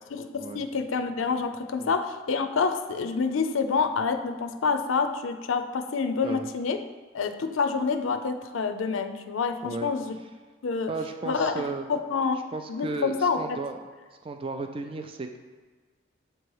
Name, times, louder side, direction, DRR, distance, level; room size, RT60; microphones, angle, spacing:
voice 1, 0.1-6.8 7.1-10.1 10.6-10.9 11.2-11.5 11.9-12.4 12.7-13.6, left 5 dB, 85° left, 8 dB, 0.5 m, -27 dB
voice 2, 10.9-11.9 12.5-13.8 14.2-15.4, right 3 dB, 25° right, 6 dB, 0.3 m, -34 dB
7.7 x 3.0 x 4.6 m, 1.4 s
head